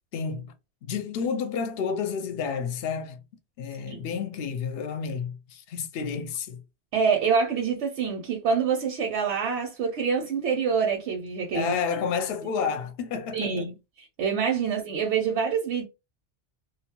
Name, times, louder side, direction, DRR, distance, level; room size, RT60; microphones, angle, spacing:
voice 1, 0.1-0.5 0.8-3.2 3.6-6.6 11.5-13.5, left 6 dB, 70° left, 0.8 m, -30 dB
voice 2, 6.9-11.7 13.3-15.8, right 6 dB, 85° right, 0.9 m, -26 dB
2.5 x 2.3 x 2.8 m
omnidirectional pair, 1.1 m